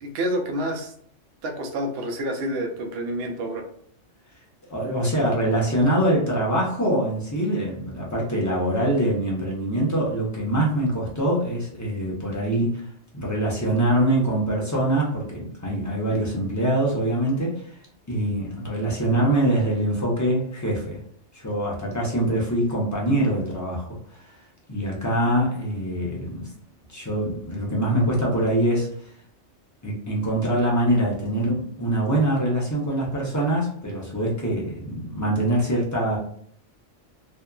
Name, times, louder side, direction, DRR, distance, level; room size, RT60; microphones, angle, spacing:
voice 1, 0.0-0.9 1.4-3.7, equal, 60° right, 3 dB, 0.7 m, -28 dB
voice 2, 4.7-12.9 13.1-17.7 18.1-21.0 21.3-24.3 24.7-26.4 26.9-29.1 29.8-36.2, right 1 dB, 25° left, -4 dB, 0.4 m, -24 dB
2.7 x 2.3 x 2.2 m, 0.62 s
omnidirectional pair, 1.3 m